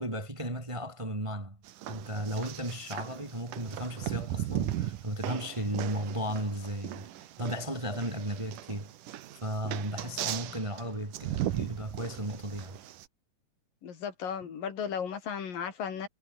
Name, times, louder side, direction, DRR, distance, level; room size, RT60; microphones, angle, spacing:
voice 1, 0.0-1.6 1.9-7.1 7.4-8.9 9.3-12.8, right 1 dB, 10° right, 2.4 m, -35 dB
sound 1, 1.7-13.1, right 13 dB, 75° right, 2.8 m, -37 dB
voice 2, 13.8-16.1, left 7 dB, 85° left, 5.0 m, -35 dB
omnidirectional pair, 3.9 m